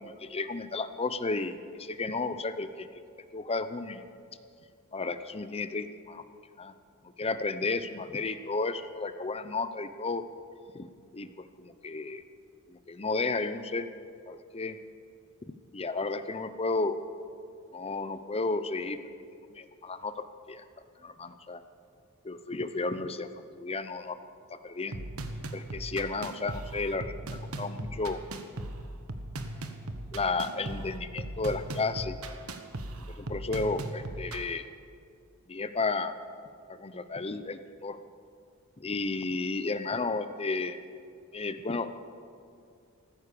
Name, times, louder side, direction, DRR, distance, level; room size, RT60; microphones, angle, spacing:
voice 1, 0.0-2.9 3.3-4.0 4.9-6.2 6.6-6.7 7.2-10.2 10.7-10.9 11.1-12.2 12.7-13.9 14.3-14.8 15.7-17.0 17.7-19.0 19.5-20.6 21.0-21.6 22.2-23.3 23.6-24.2 24.5-25.0 25.5-28.2 30.1-32.2 33.1-34.7 35.5-36.1 36.7-38.0 38.8-40.8 41.3-41.9, left 3 dB, 25° left, 11 dB, 0.7 m, -33 dB
sound 1, 24.9-34.5, right 1 dB, 70° right, 1.3 m, -38 dB
14.5 x 14.5 x 6.8 m, 2.4 s
head